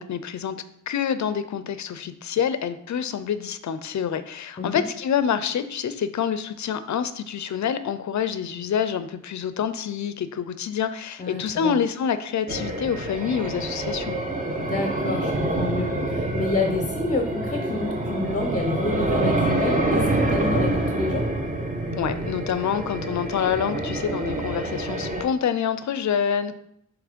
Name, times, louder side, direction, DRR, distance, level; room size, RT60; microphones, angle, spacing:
voice 1, 0.0-14.2 21.9-26.5, left 8 dB, 60° left, 12 dB, 0.5 m, -27 dB
voice 2, 11.2-11.8 14.6-21.3, left 2 dB, 25° left, 3 dB, 0.6 m, -28 dB
sound 1, 12.5-25.2, right 2 dB, 25° right, 0.8 m, -26 dB
7.2 x 3.1 x 5.1 m, 0.74 s
wide cardioid pair, 175°, 32 cm